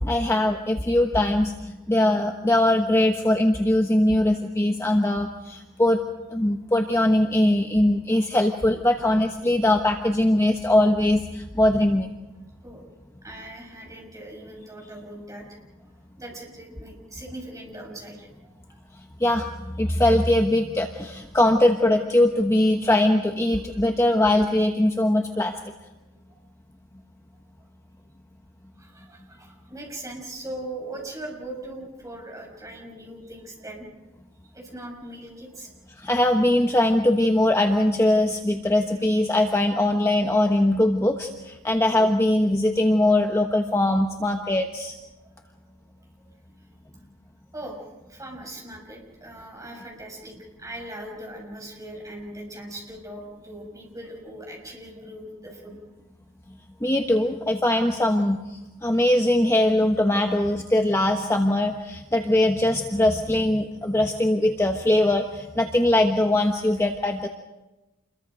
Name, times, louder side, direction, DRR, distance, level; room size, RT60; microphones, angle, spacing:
voice 1, 0.0-6.0 6.3-12.1 19.2-25.6 36.0-45.0 56.8-67.3, left 1 dB, 15° left, 3 dB, 1.1 m, -21 dB
voice 2, 13.2-15.5 16.2-18.3 18.7-18.8 28.8-33.9 34.5-35.7 45.2-45.3 47.5-47.8 48.1-55.7, right 1 dB, 15° right, -1 dB, 6.8 m, -40 dB
28.5 x 22.5 x 5.2 m, 1.1 s
head